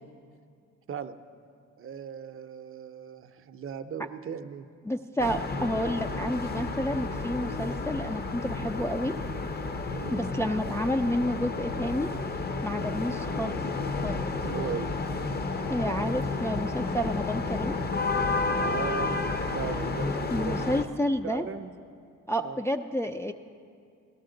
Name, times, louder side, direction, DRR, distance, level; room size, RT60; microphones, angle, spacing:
voice 1, 1.8-4.7 9.9-10.3 14.4-14.9 18.6-21.7 22.4-22.6, right 7 dB, 45° right, 9 dB, 0.6 m, -38 dB
voice 2, 4.9-9.1 10.1-12.1 12.6-13.6 14.0-14.2 15.7-17.8 20.3-21.4 22.3-23.3, equal, 10° left, 3 dB, 0.3 m, -30 dB
sound 1, 5.2-20.8, left 3 dB, 30° left, 0.7 m, -31 dB
17.0 x 12.5 x 3.8 m, 2.4 s
cardioid pair, 90°, 30 cm